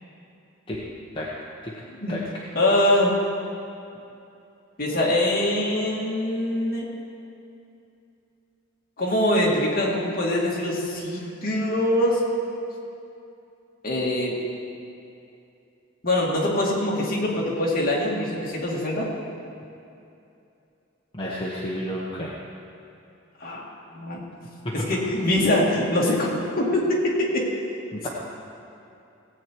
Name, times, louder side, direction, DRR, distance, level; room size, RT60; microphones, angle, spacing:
voice 1, 2.5-3.1 4.8-6.9 9.0-12.2 13.8-14.3 16.0-19.1 23.4-23.6 23.9-24.2 24.7-26.3 26.6-27.5, left 1 dB, 45° left, -4 dB, 2.3 m, -23 dB
voice 2, 21.1-22.3 24.6-24.7 27.9-28.1, equal, 25° left, -6 dB, 1.1 m, -31 dB
17.0 x 8.4 x 4.7 m, 2.7 s
head